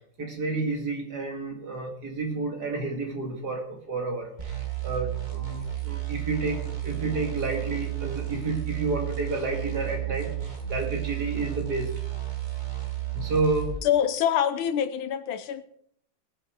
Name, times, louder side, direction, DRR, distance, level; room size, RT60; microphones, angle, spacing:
voice 1, 0.2-4.6 4.8-11.9 13.1-13.7, right 3 dB, 50° right, 2 dB, 2.9 m, -30 dB
sound 1, 4.4-13.8, right 13 dB, 20° right, 2.1 m, -32 dB
voice 2, 13.8-15.6, left 9 dB, 85° left, 12 dB, 1.7 m, -25 dB
19.0 x 7.8 x 4.7 m, 0.68 s
omnidirectional pair, 2.2 m